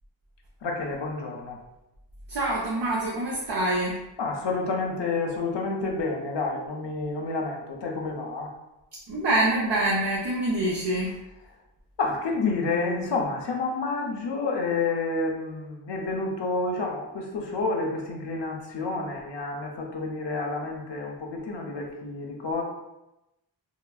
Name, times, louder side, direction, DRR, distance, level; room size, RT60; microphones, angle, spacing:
voice 1, 0.6-1.6 4.2-8.5 12.0-22.6, left 3 dB, 70° left, 0 dB, 0.6 m, -29 dB
voice 2, 2.3-4.0 9.1-11.1, right 1 dB, 65° right, -4 dB, 0.6 m, -25 dB
3.1 x 2.3 x 2.3 m, 0.94 s
wide cardioid pair, 55°, 44 cm